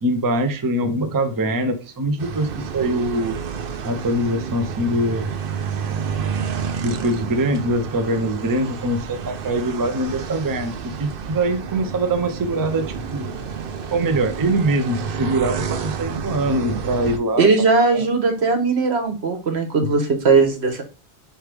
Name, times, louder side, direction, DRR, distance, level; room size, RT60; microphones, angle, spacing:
voice 1, 0.0-3.4 3.8-5.3 6.8-13.3 13.9-17.5 17.9-18.1 19.8-19.9, right 1 dB, 25° right, 0.5 m, -23 dB
sound 1, 2.2-17.2, right 7 dB, 65° right, 0.8 m, -30 dB
voice 2, 17.4-20.8, right 4 dB, 80° right, 1.3 m, -18 dB
4.8 x 3.3 x 3.3 m
omnidirectional pair, 1.1 m